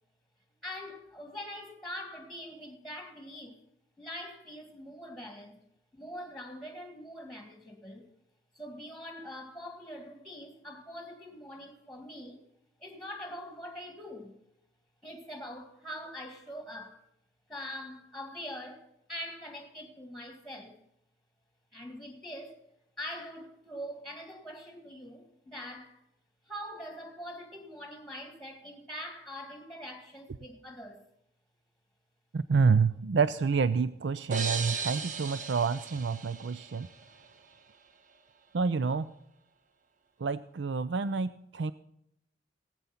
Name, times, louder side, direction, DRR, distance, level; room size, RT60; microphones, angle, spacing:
voice 1, 0.6-3.6 4.0-5.6 5.9-8.1 8.5-12.4 12.8-14.4 15.0-17.0 17.5-20.8 21.7-22.7 23.0-26.0 26.5-31.1, equal, ahead, 2.0 m, -43 dB
voice 2, 32.3-36.9 38.5-39.1 40.2-41.7, right 5 dB, 75° right, 0.5 m, -28 dB
sound 1, 34.3-37.1, right 5 dB, 45° right, 1.3 m, -37 dB
17.5 x 8.3 x 5.7 m
head